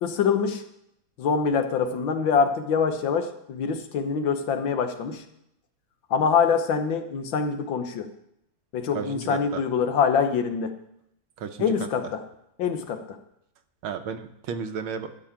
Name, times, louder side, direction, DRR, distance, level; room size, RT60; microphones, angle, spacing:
voice 1, 0.0-0.6 1.2-5.2 6.1-8.1 8.7-10.8 11.6-12.2 12.6-13.2, left 6 dB, 70° left, 7 dB, 1.7 m, -24 dB
voice 2, 8.9-9.6 11.4-11.7 13.8-15.1, right 6 dB, 85° right, 8 dB, 1.7 m, -33 dB
12.5 x 5.2 x 8.6 m, 0.77 s
omnidirectional pair, 2.2 m